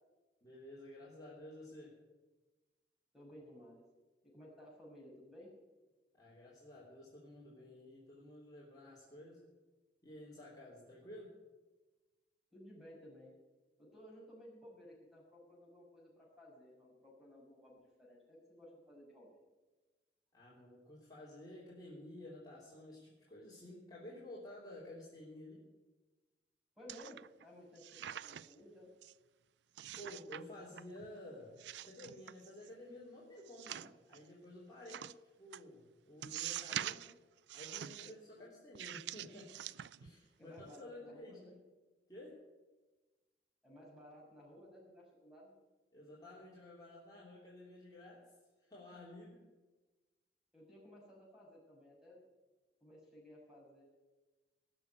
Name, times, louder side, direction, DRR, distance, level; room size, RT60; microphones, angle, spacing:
voice 1, 0.4-1.9 6.1-9.4 10.0-11.3 20.3-25.6 30.0-31.6 31.8-35.1 35.4-37.1 37.5-39.5 40.0-41.6 42.1-42.4 45.9-48.2 48.6-49.4, left 1 dB, 25° left, -7 dB, 3.3 m, -52 dB
voice 2, 3.1-3.8 4.2-5.5 12.5-13.3 13.8-19.3 26.8-28.9 38.0-38.1 40.0-41.5 43.6-45.5 50.5-52.2 52.8-53.8, equal, ahead, -4 dB, 6.3 m, -57 dB
sound 1, 26.9-27.4 27.8-28.6 29.0-29.1 29.8-30.4 30.7-31.2 31.6-32.7 33.5-34.2 34.9-35.1 35.5-35.6 36.2-37.1 37.5-38.1 38.7-40.2 40.6-40.8, right 11 dB, 75° right, 0.4 m, -45 dB
19.0 x 6.7 x 9.6 m, 1.2 s
head